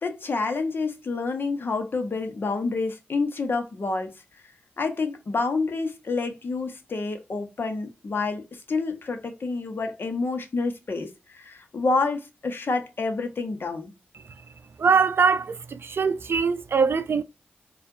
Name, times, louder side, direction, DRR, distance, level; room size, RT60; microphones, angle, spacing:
voice 1, 0.0-4.1 4.8-13.9, left 3 dB, 55° left, 1.0 m, -28 dB
voice 2, 14.8-17.2, right 5 dB, 60° right, 0.4 m, -22 dB
4.3 x 2.5 x 2.7 m
cardioid pair, 50°, 4 cm